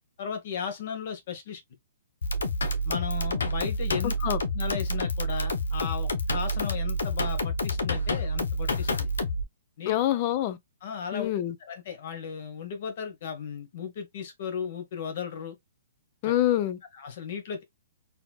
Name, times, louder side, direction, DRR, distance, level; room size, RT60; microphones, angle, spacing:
voice 1, 0.2-1.6 2.8-4.1 4.5-9.1 9.8-10.0 10.8-11.3 11.6-15.5 16.2-16.3 16.9-17.6, left 7 dB, 55° left, 1.2 m, -36 dB
sound 1, 2.2-9.4, equal, 85° left, 0.9 m, -28 dB
voice 2, 4.0-4.4 9.9-10.6 11.1-11.5 16.2-16.8, left 13 dB, 35° left, 0.6 m, -26 dB
4.1 x 2.9 x 2.3 m
hypercardioid pair, 140°, 0 cm